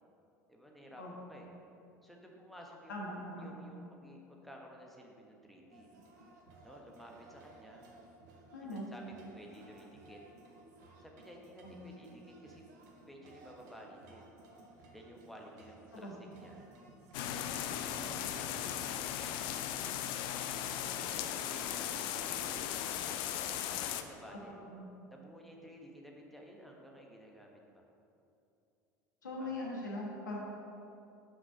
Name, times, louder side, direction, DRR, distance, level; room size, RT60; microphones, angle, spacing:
voice 1, 0.5-1.5 2.0-3.0 3.4-5.9 6.6-7.9 8.6-10.2 11.0-12.7 12.9-14.3 14.9-16.6 17.2-19.3 19.9-22.8 23.6-24.5 25.1-27.8 29.2-29.6, equal, ahead, -1 dB, 1.3 m, -54 dB
voice 2, 2.9-3.5 8.5-8.9 11.6-11.8 15.9-16.1 24.7-24.9 29.2-30.4, left 1 dB, 85° left, -3 dB, 1.3 m, -41 dB
sound 1, 5.7-18.7, right 2 dB, 70° right, 1.0 m, -58 dB
sound 2, 17.1-24.0, left 10 dB, 55° left, 0.5 m, -37 dB
6.1 x 5.2 x 5.5 m, 2.7 s
hypercardioid pair, 70°, 10 cm